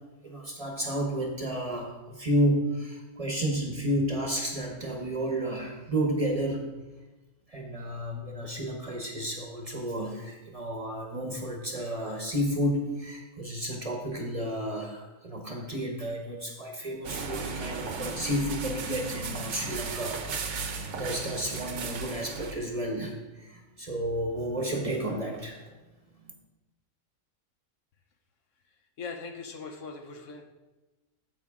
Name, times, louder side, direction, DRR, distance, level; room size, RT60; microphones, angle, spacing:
voice 1, 0.2-6.7 7.5-25.7 26.2-26.3, equal, 30° right, 1 dB, 1.0 m, -31 dB
sound 1, 17.0-22.5, right 4 dB, 60° right, 1.1 m, -35 dB
voice 2, 29.0-30.4, left 4 dB, 65° left, 4 dB, 1.1 m, -40 dB
9.8 x 7.2 x 3.6 m, 1.1 s
omnidirectional pair, 1.5 m